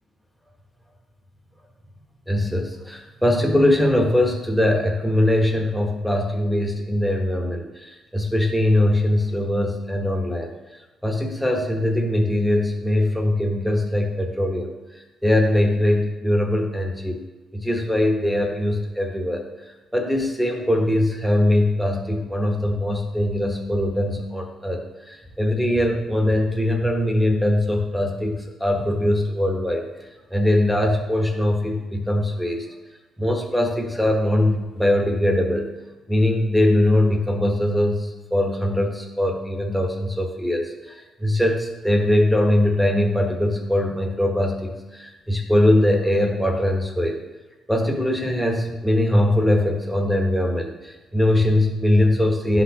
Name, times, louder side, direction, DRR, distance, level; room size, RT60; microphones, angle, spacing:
voice 1, 2.3-10.5 11.0-14.7 15.2-17.2 17.5-19.4 19.9-24.8 25.1-29.8 30.3-32.7 33.2-35.7 36.1-47.2 47.7-52.6, left 1 dB, ahead, 2 dB, 1.1 m, -21 dB
11.0 x 4.0 x 2.9 m, 1.2 s
cardioid pair, 90°, 0 cm